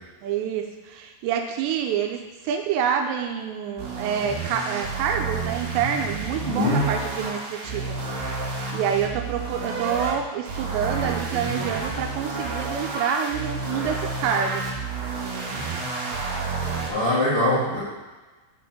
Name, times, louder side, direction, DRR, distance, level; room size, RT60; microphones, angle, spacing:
voice 1, 0.2-8.0 8.4-8.5 8.7-14.6, right 8 dB, 85° right, 4 dB, 2.7 m, -27 dB
sound 1, 3.8-10.1 10.5-16.9, right 3 dB, 65° right, 2.9 m, -30 dB
voice 2, 6.4-6.8 16.9-17.8, left 1 dB, 70° left, -9 dB, 1.3 m, -22 dB
6.8 x 4.2 x 5.9 m, 1.2 s
omnidirectional pair, 5.1 m